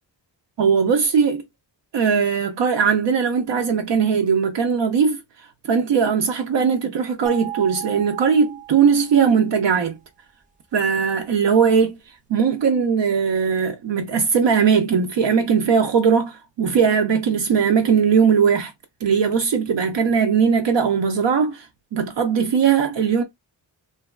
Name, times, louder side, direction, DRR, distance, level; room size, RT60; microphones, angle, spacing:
voice 1, 0.6-1.4 1.9-5.2 5.7-10.0 10.7-12.0 12.3-18.7 19.0-21.7 21.9-23.2, right 6 dB, 70° right, 0.5 m, -19 dB
sound 1, 7.3-9.5, right 14 dB, 20° right, 0.6 m, -35 dB
2.7 x 2.3 x 2.2 m
wide cardioid pair, 75°, 45 cm